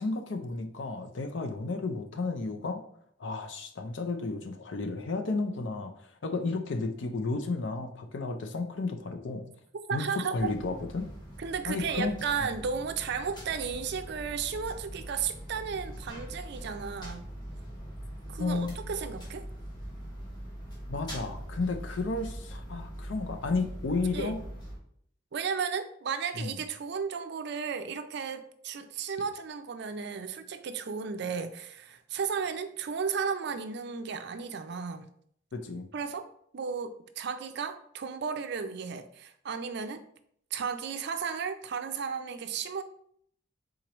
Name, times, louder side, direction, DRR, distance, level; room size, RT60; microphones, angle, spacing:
voice 1, 0.0-2.8 3.2-5.9 6.2-9.5 9.9-11.1 11.7-12.5 18.4-18.7 20.9-24.4 26.4-26.5 35.5-35.9, left 3 dB, 65° left, 7 dB, 0.5 m, -32 dB
voice 2, 9.9-10.5 11.4-17.3 18.3-19.4 24.1-24.4 25.3-35.1 35.9-40.0 40.5-42.8, right 6 dB, 60° right, 9 dB, 0.4 m, -34 dB
sound 1, 10.3-24.8, equal, 20° left, 1.1 m, -42 dB
4.5 x 3.8 x 3.0 m, 0.66 s
head